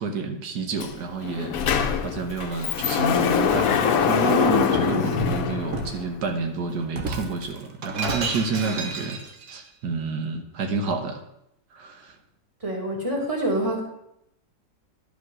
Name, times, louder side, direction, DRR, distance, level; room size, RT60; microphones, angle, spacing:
voice 1, 0.0-1.6 2.0-9.2 9.5-11.2 11.7-12.2, right 4 dB, 85° right, 4 dB, 1.6 m, -29 dB
Sliding door, 0.8-0.9 1.2-6.2, left 7 dB, 65° left, 1.1 m, -23 dB
Shatter, 4.7-5.0 5.7-6.0 6.9-9.5, right 3 dB, 55° right, 1.2 m, -32 dB
voice 2, 12.6-13.8, right 1 dB, 20° right, -2 dB, 2.4 m, -26 dB
11.0 x 5.3 x 6.1 m, 0.81 s
omnidirectional pair, 1.7 m